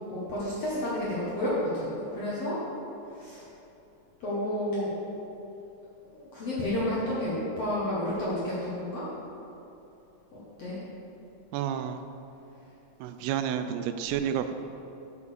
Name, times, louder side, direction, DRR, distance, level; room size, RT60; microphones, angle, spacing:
voice 1, 0.1-2.6 3.1-3.5 4.2-4.9 6.1-9.0 10.6-10.8, left 1 dB, 60° left, -8 dB, 1.6 m, -31 dB
voice 2, 11.5-12.0 13.0-14.6, right 9 dB, 90° right, 9 dB, 2.6 m, -30 dB
7.3 x 6.1 x 6.7 m, 3.0 s
omnidirectional pair, 4.6 m